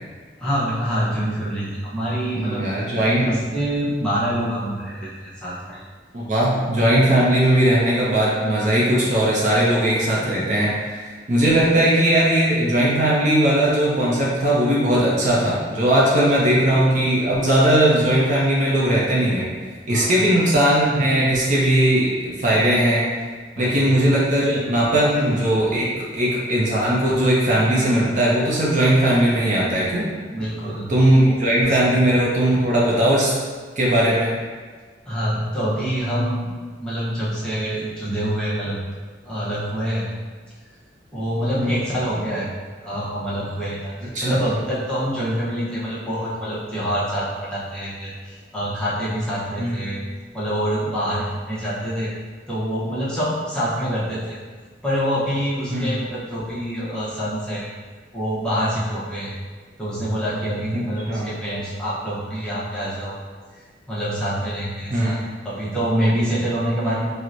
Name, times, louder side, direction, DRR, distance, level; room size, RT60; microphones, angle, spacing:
voice 1, 0.4-2.7 3.0-5.8 10.5-10.6 19.9-20.2 23.6-23.9 30.3-30.9 31.2-31.4 31.6-32.0 35.1-36.5 36.8-38.8 39.2-40.1 41.1-42.5 42.8-43.9 44.2-50.0 50.3-52.1 52.5-54.4 54.8-57.7 58.1-59.3 59.8-63.1 63.9-65.2 65.4-67.1, equal, 5° left, -10 dB, 0.7 m, -26 dB
voice 2, 2.4-3.3 6.1-19.4 19.9-23.1 23.6-25.9 26.1-30.1 30.9-33.3 33.8-34.3 41.6-41.8 44.0-44.4 49.6-49.8 55.7-56.0 60.7-61.3 64.9-65.3 66.8-67.0, right 1 dB, 45° right, -5 dB, 0.5 m, -19 dB
4.4 x 2.1 x 2.5 m, 1.5 s
head